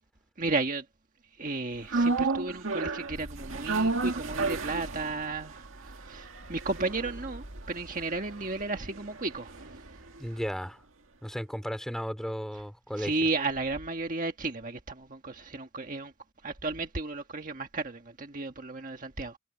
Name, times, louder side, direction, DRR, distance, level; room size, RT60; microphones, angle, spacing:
voice 1, 0.4-0.8 1.4-5.6 6.0-9.5 13.0-16.1 16.4-19.4, right 3 dB, 40° right, 1.6 m, -33 dB
sound 1, 1.9-10.2 10.5-10.6, right 3 dB, 75° right, 1.9 m, -33 dB
voice 2, 10.2-10.8 11.2-13.2, equal, ahead, 4.0 m, -34 dB
head